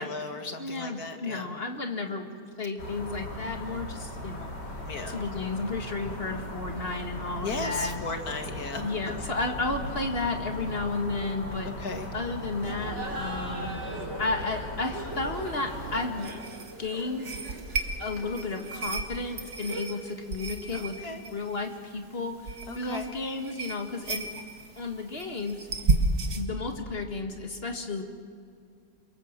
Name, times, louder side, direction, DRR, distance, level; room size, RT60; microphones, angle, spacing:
voice 1, 0.0-1.5 4.9-5.2 7.4-8.9 11.6-12.1 20.7-21.2 22.7-23.1, left 4 dB, 60° left, 6 dB, 2.1 m, -36 dB
voice 2, 0.6-2.3 2.6-4.5 5.1-8.0 8.8-11.7 12.1-13.8 14.2-17.3 18.0-21.0 21.3-24.3 24.8-25.7 26.3-28.0, left 3 dB, 35° left, 4 dB, 2.0 m, -33 dB
sound 1, 2.8-16.1, equal, 80° left, 3.7 m, -38 dB
Laughter, 12.6-20.1, right 1 dB, 40° right, 3.8 m, -41 dB
Quiet ringing of glass holding in hand., 15.7-26.4, right 3 dB, 60° right, 2.1 m, -34 dB
28.5 x 23.0 x 7.4 m, 2.3 s
omnidirectional pair, 1.8 m